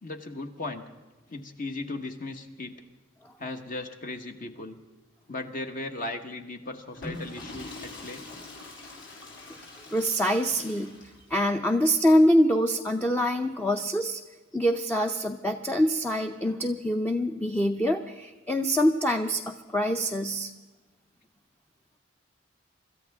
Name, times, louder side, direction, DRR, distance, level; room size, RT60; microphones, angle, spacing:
voice 1, 0.0-0.8 1.3-2.7 3.4-4.8 5.3-8.2, left 2 dB, 45° left, 5 dB, 1.3 m, -37 dB
Water / Toilet flush, 6.9-11.4, left 2 dB, 65° left, 6.9 m, -43 dB
voice 2, 9.9-11.0 11.3-14.2 14.5-20.5, equal, 10° left, 4 dB, 0.6 m, -25 dB
26.0 x 14.0 x 3.6 m, 1.2 s
head